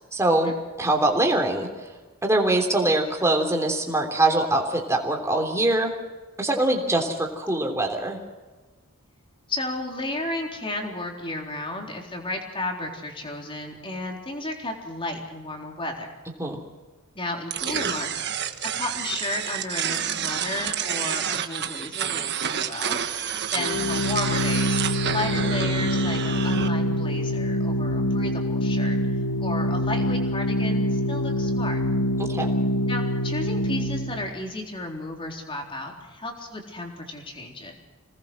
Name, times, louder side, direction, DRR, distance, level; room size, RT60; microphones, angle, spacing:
voice 1, 0.1-1.7 2.2-5.9 6.4-8.2 16.4-16.6 32.3-32.5, right 2 dB, 15° right, 2 dB, 3.4 m, -23 dB
voice 2, 9.5-16.1 17.1-23.0 23.5-24.8 25.1-29.0 29.4-31.8 32.9-37.7, left 2 dB, 25° left, 1 dB, 3.9 m, -33 dB
sound 1, 17.5-26.7, right 8 dB, 50° right, 1.4 m, -29 dB
Organ, 23.6-34.3, equal, 85° left, 1.6 m, -25 dB
27.0 x 19.5 x 6.3 m, 1.3 s
head